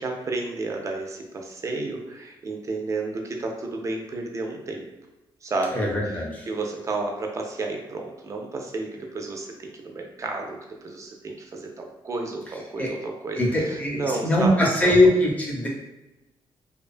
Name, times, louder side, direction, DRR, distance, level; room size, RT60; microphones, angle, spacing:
voice 1, 0.0-4.9 5.4-5.9 6.5-15.0, right 3 dB, 35° right, 2 dB, 0.4 m, -32 dB
voice 2, 5.7-6.5 12.8-12.9 13.4-15.7, left 1 dB, 15° left, -3 dB, 0.6 m, -21 dB
2.4 x 2.2 x 2.4 m, 1.0 s
cardioid pair, 130°, 10 cm